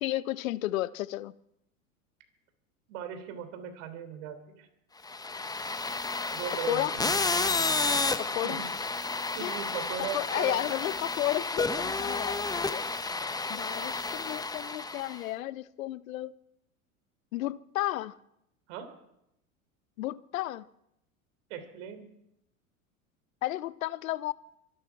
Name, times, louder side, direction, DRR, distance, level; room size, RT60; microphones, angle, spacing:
voice 1, 0.0-1.3 6.7-6.9 8.2-8.6 9.4-12.8 13.5-16.3 17.3-18.2 20.0-20.7 23.4-24.3, left 15 dB, 70° left, 0.8 m, -33 dB
voice 2, 2.9-4.7 6.3-7.1 7.8-8.0 8.4-8.7 9.3-10.6 18.7-18.9 21.5-22.0, right 9 dB, 60° right, 3.3 m, -38 dB
sound 1, 5.1-15.2, left 3 dB, 10° left, 1.0 m, -31 dB
24.0 x 11.5 x 4.7 m
hypercardioid pair, 90°, 42 cm